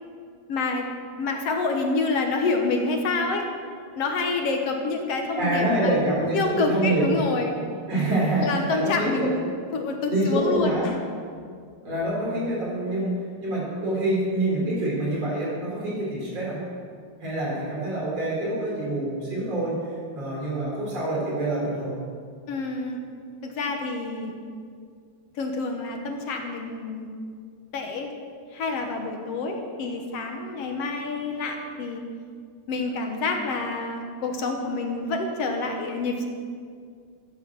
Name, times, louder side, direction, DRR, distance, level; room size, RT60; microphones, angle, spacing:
voice 1, 0.5-0.9 1.2-3.5 4.0-6.0 6.3-7.6 8.4-9.4 9.7-10.9 22.5-23.0 23.4-24.3 25.4-27.1 27.7-28.1 28.5-32.0 32.7-36.2, left 3 dB, 65° left, 3 dB, 1.8 m, -27 dB
voice 2, 5.4-7.2 7.9-9.3 10.1-10.9 11.8-16.6 17.2-22.0, right 1 dB, 50° right, -5 dB, 5.4 m, -26 dB
14.5 x 10.5 x 6.2 m, 2.2 s
omnidirectional pair, 3.6 m